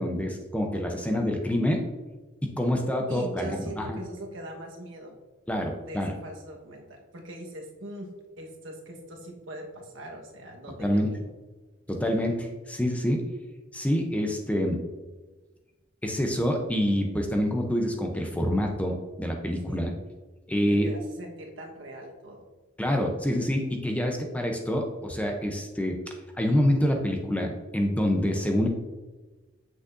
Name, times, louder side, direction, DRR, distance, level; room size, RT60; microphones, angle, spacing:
voice 1, 0.0-1.9 2.4-4.0 5.5-6.1 10.8-11.1 11.9-13.2 13.7-14.8 16.0-19.9 20.5-20.9 22.8-26.0 26.4-28.7, equal, 5° left, 2 dB, 0.6 m, -26 dB
voice 2, 3.1-5.2 5.8-8.1 8.4-11.3 19.7-19.8 20.7-22.4, right 1 dB, 75° right, 0 dB, 1.3 m, -41 dB
8.0 x 6.3 x 2.6 m, 1.2 s
head